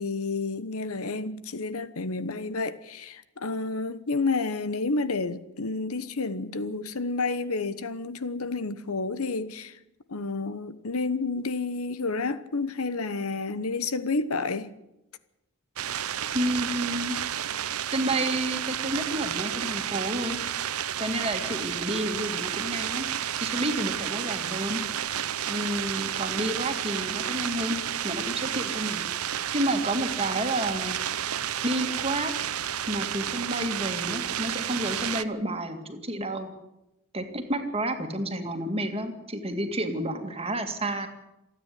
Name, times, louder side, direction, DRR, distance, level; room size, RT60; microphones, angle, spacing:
voice 1, 0.0-9.8 10.1-14.7, left 3 dB, 75° left, 1.1 m, -30 dB
sound 1, 15.8-35.2, right 10 dB, 80° right, 0.9 m, -31 dB
voice 2, 16.3-17.2 17.9-20.4 21.0-23.1 23.4-24.8 25.5-27.8 28.0-29.0 29.5-31.0 31.6-32.3 32.9-36.5 37.1-41.1, right 1 dB, 25° right, 2.2 m, -30 dB
27.5 x 9.6 x 9.9 m
head